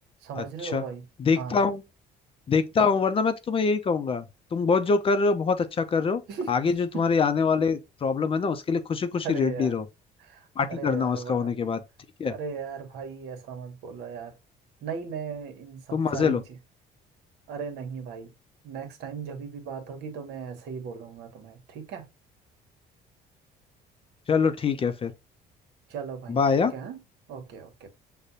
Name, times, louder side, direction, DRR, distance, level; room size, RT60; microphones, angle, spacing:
voice 1, 0.2-1.1 1.3-1.6 6.3-6.5 6.9-7.0 9.2-9.8 10.2-11.5 12.2-14.4 14.8-16.6 17.5-18.3 18.6-22.1 25.9-27.0 27.3-27.9, right 6 dB, 80° right, 1.1 m, -37 dB
voice 2, 1.2-1.8 2.5-4.2 4.5-6.2 6.5-9.8 10.6-11.8 12.2-12.3 15.9-16.4 24.3-25.1 26.3-26.7, left 5 dB, 35° left, 0.5 m, -24 dB
6.6 x 2.2 x 2.6 m
cardioid pair, 110°, 17 cm